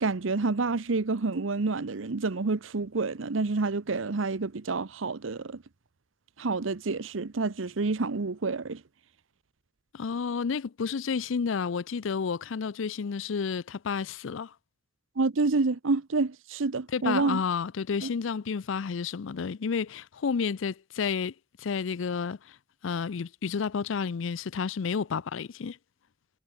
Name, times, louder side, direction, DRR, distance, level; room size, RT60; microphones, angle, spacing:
voice 1, 0.0-5.6 6.4-8.8 15.2-17.4 18.0-18.1, right 3 dB, 80° right, 0.8 m, -28 dB
voice 2, 9.9-14.5 16.9-22.6 22.8-25.8, left 6 dB, 80° left, 0.5 m, -31 dB
head